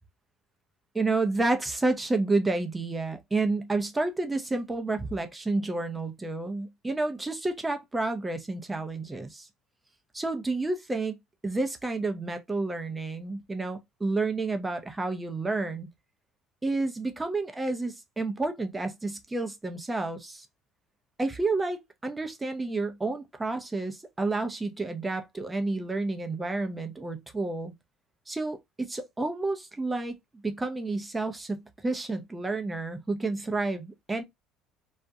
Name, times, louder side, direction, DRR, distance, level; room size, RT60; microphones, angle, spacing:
voice 1, 0.9-9.5 10.1-11.2 11.4-15.9 16.6-20.5 21.2-27.7 28.3-30.2 30.4-34.2, right 3 dB, 15° right, 0.5 m, -30 dB
2.3 x 2.1 x 2.6 m
cardioid pair, 120°, 0 cm